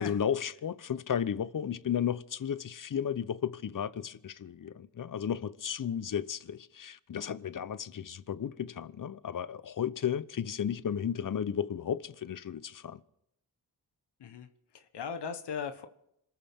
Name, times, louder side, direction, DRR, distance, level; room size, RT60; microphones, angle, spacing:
voice 1, 0.0-13.0, left 8 dB, 50° left, 0.8 m, -34 dB
voice 2, 14.2-15.9, left 6 dB, 80° left, 1.3 m, -38 dB
26.5 x 14.0 x 3.7 m
cardioid pair, 70°, 40 cm